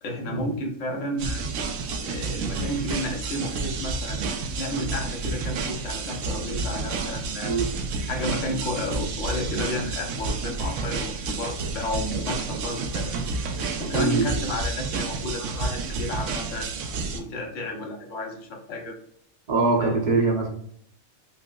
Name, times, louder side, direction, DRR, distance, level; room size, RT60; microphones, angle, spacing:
voice 1, 0.0-1.5 2.0-4.2 4.6-7.5 8.1-13.4 13.8-16.7 17.1-18.9 19.8-20.0, left 1 dB, 70° left, 1 dB, 1.1 m, -32 dB
sound 1, 1.2-17.2, right 4 dB, 75° right, 0.9 m, -30 dB
voice 2, 13.9-14.3 19.5-20.5, right 3 dB, 40° right, -1 dB, 0.8 m, -22 dB
5.6 x 2.1 x 2.3 m, 0.66 s
omnidirectional pair, 1.3 m